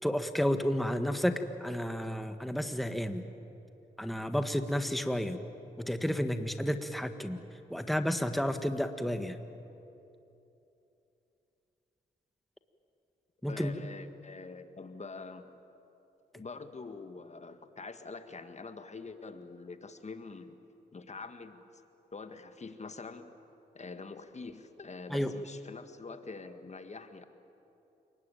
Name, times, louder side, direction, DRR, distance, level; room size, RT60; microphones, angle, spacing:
voice 1, 0.0-3.2 4.0-5.4 5.8-7.4 7.7-9.4 13.4-13.8 25.1-25.3, equal, ahead, 8 dB, 1.6 m, -31 dB
voice 2, 13.4-15.6 16.3-20.6 20.9-21.8 22.1-23.3 23.7-27.3, left 4 dB, 40° left, 9 dB, 1.7 m, -45 dB
29.0 x 20.0 x 9.1 m, 2.9 s
cardioid pair, 60°, 18 cm